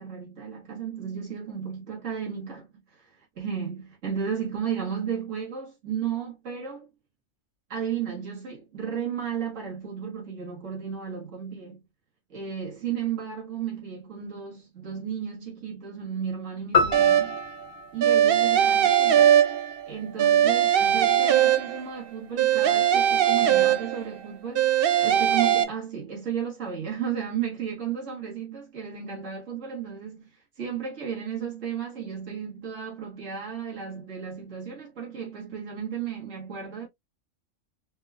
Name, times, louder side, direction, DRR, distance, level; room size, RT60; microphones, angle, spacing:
voice 1, 0.0-6.9 7.7-11.8 12.3-17.4 17.9-19.4 19.9-36.9, right 8 dB, 80° right, 2.0 m, -34 dB
sound 1, 16.7-19.2, left 4 dB, 65° left, 1.4 m, -28 dB
sound 2, 16.9-17.5 18.0-19.9 20.2-22.0 22.4-24.2 24.5-25.6, right 10 dB, 60° right, 0.7 m, -20 dB
4.3 x 3.3 x 2.3 m
omnidirectional pair, 1.3 m